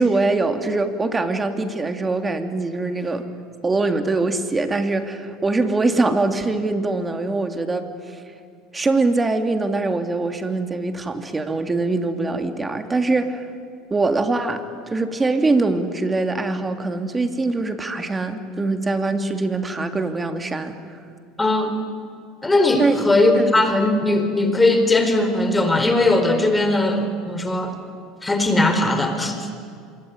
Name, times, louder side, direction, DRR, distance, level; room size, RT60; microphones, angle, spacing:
voice 1, 0.0-3.2 3.6-7.9 8.7-13.5 13.9-21.0 22.8-23.1 23.3-23.6, right 3 dB, 20° right, 7 dB, 2.7 m, -23 dB
voice 2, 21.4-21.8 22.4-27.8 28.2-29.5, left 2 dB, 15° left, 7 dB, 4.4 m, -19 dB
26.5 x 23.5 x 9.6 m, 2.4 s
hypercardioid pair, 90°, 0 cm